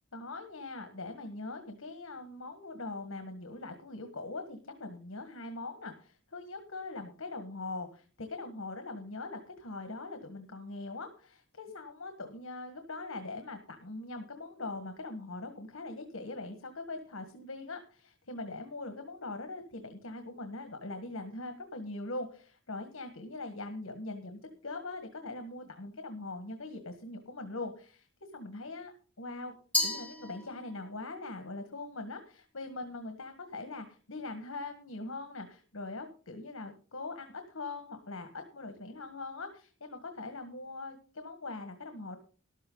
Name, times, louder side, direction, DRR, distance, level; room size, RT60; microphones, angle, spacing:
voice 1, 0.1-28.1 28.3-29.5 29.8-42.2, left 2 dB, 75° left, 6 dB, 1.6 m, -42 dB
Glass, 29.7-31.0, left 2 dB, 5° left, 2.2 m, -33 dB
13.5 x 12.0 x 3.9 m, 0.40 s
head